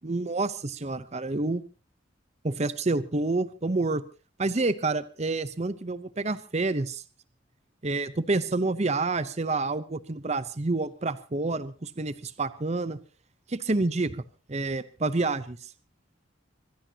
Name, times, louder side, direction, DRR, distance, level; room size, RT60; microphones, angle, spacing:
voice 1, 0.0-1.6 2.4-4.0 4.4-7.0 7.8-13.0 13.5-14.2 14.5-15.6, right 3 dB, 35° right, 14 dB, 0.7 m, -28 dB
24.5 x 16.5 x 2.8 m, 0.33 s
head